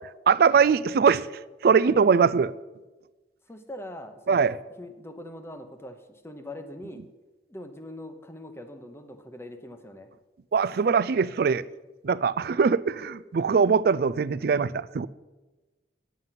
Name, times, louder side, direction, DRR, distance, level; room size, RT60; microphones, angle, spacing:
voice 1, 0.3-1.3 1.6-2.5 4.3-4.5 10.5-11.6 12.0-15.1, right 6 dB, 55° right, 0.3 m, -21 dB
voice 2, 3.5-7.1 7.5-10.1, left 1 dB, 15° left, 0.9 m, -42 dB
9.5 x 9.4 x 5.8 m
head